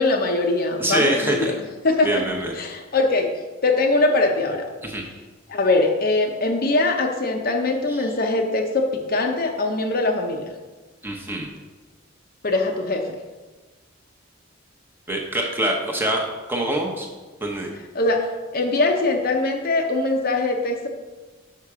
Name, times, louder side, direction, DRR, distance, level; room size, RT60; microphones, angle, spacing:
voice 1, 0.0-1.5 1.8-2.2 2.6-3.3 3.6-4.7 5.5-10.5 12.4-13.1 17.9-18.3 18.5-20.9, left 2 dB, 45° left, 3 dB, 0.7 m, -22 dB
voice 2, 0.8-1.5 2.0-2.5 4.8-5.0 7.9-8.1 11.0-11.5 15.1-16.2 16.5-17.1 17.4-17.7, right 1 dB, 10° right, 0 dB, 0.8 m, -24 dB
5.8 x 5.7 x 4.8 m, 1.3 s
head